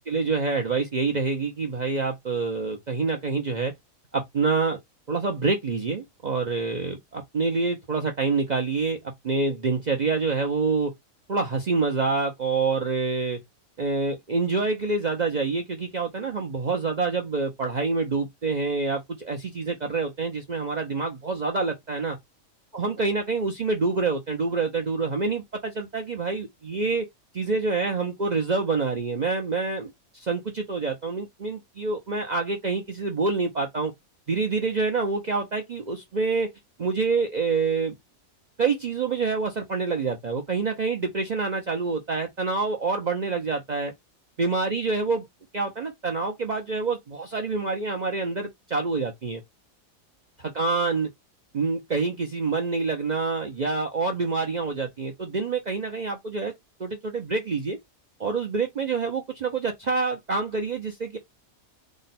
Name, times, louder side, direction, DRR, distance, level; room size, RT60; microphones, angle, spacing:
voice 1, 0.1-3.7 4.1-4.8 5.1-10.9 11.3-13.4 13.8-22.2 22.7-27.1 27.3-33.9 34.3-36.5 36.8-38.0 38.6-43.9 44.4-45.3 45.5-49.4 50.6-51.1 51.5-56.5 56.8-57.8 58.2-61.2, right 4 dB, 45° right, 0.5 m, -27 dB
3.7 x 2.2 x 4.0 m
omnidirectional pair, 1.4 m